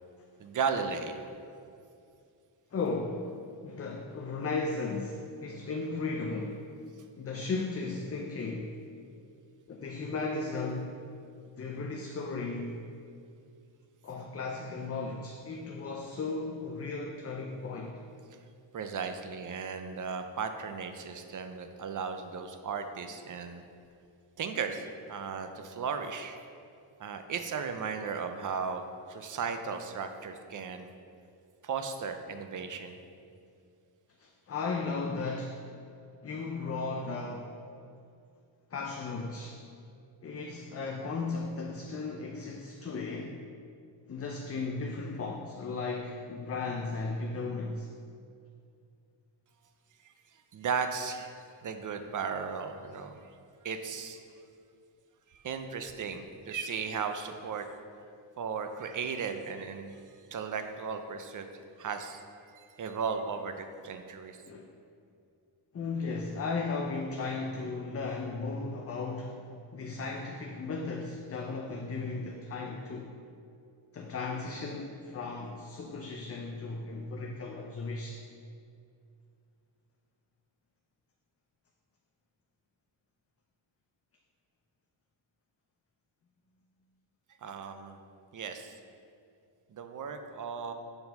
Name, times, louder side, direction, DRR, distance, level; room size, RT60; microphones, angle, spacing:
voice 1, 0.4-1.2 18.7-23.6 24.4-26.4 27.0-30.9 31.6-33.0 50.0-50.1 50.5-53.2 53.6-54.2 55.3-57.7 58.4-60.0 60.3-61.5 61.8-62.2 62.5-64.4 87.4-88.0 88.3-88.8 89.7-90.7, right 6 dB, 40° right, 7 dB, 0.5 m, -36 dB
voice 2, 2.7-3.4 3.6-6.6 7.2-8.7 9.7-10.9 11.6-12.8 14.0-18.0 34.2-35.6 36.2-37.5 38.7-39.6 40.2-43.3 44.1-47.9 64.5-64.7 65.7-69.5 69.7-73.1 73.9-78.2, left 3 dB, 30° left, 1 dB, 0.4 m, -35 dB
6.9 x 4.0 x 5.3 m, 2.4 s
wide cardioid pair, 135°, 48 cm